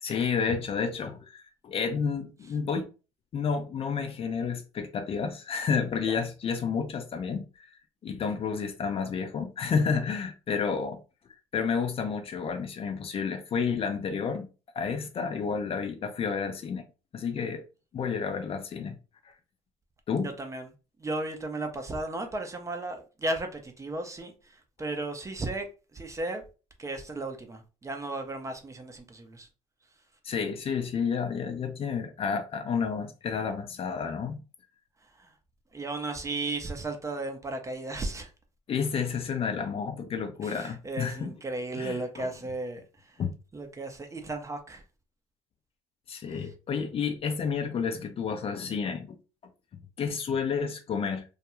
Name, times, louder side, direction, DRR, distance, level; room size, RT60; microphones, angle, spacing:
voice 1, 0.0-2.9 3.3-7.7 8.0-11.0 11.5-14.5 14.7-16.9 17.1-17.6 17.9-18.9 20.1-20.3 30.2-34.4 38.7-41.3 41.8-42.3 43.2-43.3 46.1-49.2 49.7-51.4, left 6 dB, 35° left, 0.5 m, -30 dB
voice 2, 20.2-20.7 21.0-24.3 24.8-25.7 25.9-26.4 26.8-29.5 35.2-35.3 35.7-38.3 40.4-42.8 43.5-44.8 46.3-46.5, right 2 dB, 20° right, 0.6 m, -35 dB
2.3 x 2.2 x 2.9 m
hypercardioid pair, 70°, 16 cm